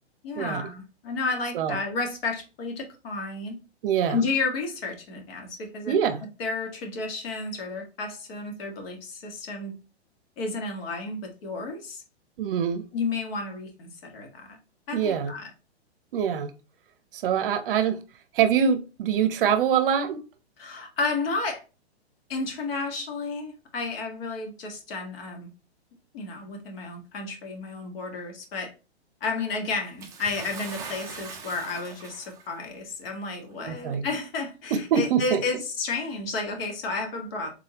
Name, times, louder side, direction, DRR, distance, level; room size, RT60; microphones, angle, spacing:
voice 1, 0.2-3.6 4.1-6.0 6.4-9.8 10.4-12.0 12.9-14.6 14.9-15.5 20.6-21.6 22.3-25.5 26.1-28.7 29.2-37.5, left 3 dB, 60° left, 1.5 m, -32 dB
voice 2, 3.8-4.2 5.9-6.2 12.4-12.8 14.9-15.3 16.1-16.5 17.1-18.0 18.3-20.2 33.6-34.1 34.9-35.4, right 8 dB, 55° right, 0.6 m, -24 dB
Bathtub (filling or washing) / Splash splatter, 30.0-32.6 33.5-33.6 34.6-34.7, right 5 dB, 10° right, 0.4 m, -41 dB
3.6 x 3.4 x 2.9 m
hypercardioid pair, 135°, 33 cm